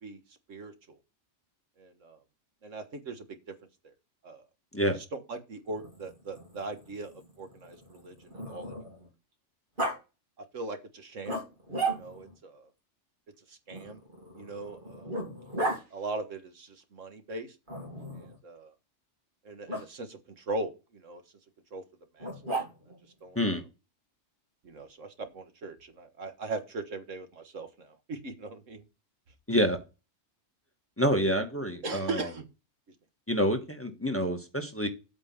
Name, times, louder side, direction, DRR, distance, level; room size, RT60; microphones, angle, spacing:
voice 1, 0.5-1.0 1.8-2.2 2.6-3.4 4.2-4.4 5.0-8.7 10.5-11.4 11.9-12.7 13.5-14.0 14.4-15.2 15.9-17.6 18.1-18.7 19.5-21.2 21.7-21.8 22.1-22.3 23.2-23.4 24.6-28.8 31.8-32.5, right 3 dB, 80° right, 8 dB, 1.7 m, -39 dB
Growling, 5.7-9.1 9.8-10.0 11.3-12.4 13.7-15.8 17.7-18.4 19.7-19.8 22.2-23.0, right 2 dB, 40° right, 2.5 m, -36 dB
voice 2, 31.0-32.3 33.3-34.9, equal, 10° left, 5 dB, 1.4 m, -27 dB
8.3 x 4.4 x 7.0 m, 0.28 s
omnidirectional pair, 1.3 m